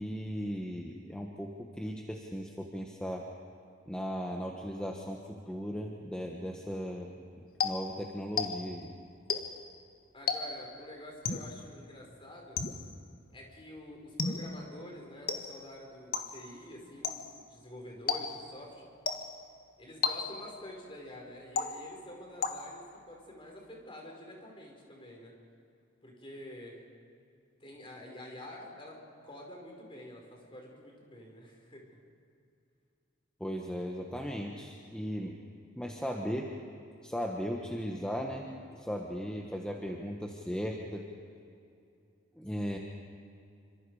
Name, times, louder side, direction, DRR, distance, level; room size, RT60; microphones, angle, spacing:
voice 1, 0.0-3.2 3.9-7.1 7.6-8.9 33.4-35.4 35.7-36.5 37.0-41.0 42.3-42.8, equal, 5° left, 0 dB, 1.4 m, -37 dB
sound 1, 7.6-8.9 9.3-9.7 10.3-10.8 11.2-11.6 12.6-13.0 14.2-14.7 15.3-15.7 16.1-16.5 17.0-17.4 18.1-18.6 19.1-19.5 20.0-20.6 21.6-22.1 22.4-22.9, left 5 dB, 50° left, 1.5 m, -35 dB
voice 2, 10.1-12.6 13.3-18.9 19.8-25.3 26.0-26.8 27.6-30.2 30.5-31.8, left 1 dB, 25° left, 0 dB, 5.2 m, -48 dB
28.0 x 26.0 x 5.0 m, 2.5 s
head